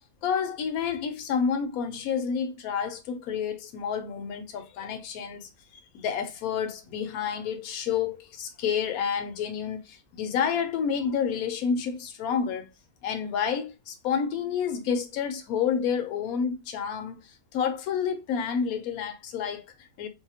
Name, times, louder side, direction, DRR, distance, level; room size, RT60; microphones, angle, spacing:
voice 1, 0.2-5.5 5.9-12.7 13.0-20.1, left 7 dB, 80° left, 1.0 m, -29 dB
2.7 x 2.2 x 2.7 m
omnidirectional pair, 1.5 m